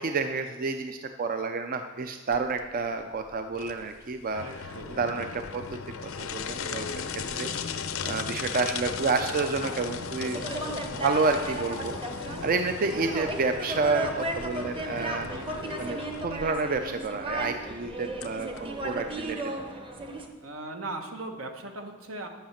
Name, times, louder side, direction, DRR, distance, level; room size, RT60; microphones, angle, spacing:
voice 1, 0.0-6.9 7.3-7.5 8.0-10.4 10.9-11.9 12.4-15.3 15.8-19.4, right 4 dB, 45° right, 7 dB, 0.4 m, -29 dB
sound 1, 2.3-19.3, left 6 dB, 90° left, 0.6 m, -38 dB
voice 2, 4.4-5.3 15.3-15.7 20.4-22.3, right 2 dB, 80° right, 5 dB, 1.2 m, -39 dB
sound 2, 6.3-10.4, left 3 dB, 40° left, 0.5 m, -44 dB
sound 3, 9.3-20.3, right 1 dB, 25° right, 0.9 m, -35 dB
10.5 x 5.7 x 7.1 m, 1.3 s
head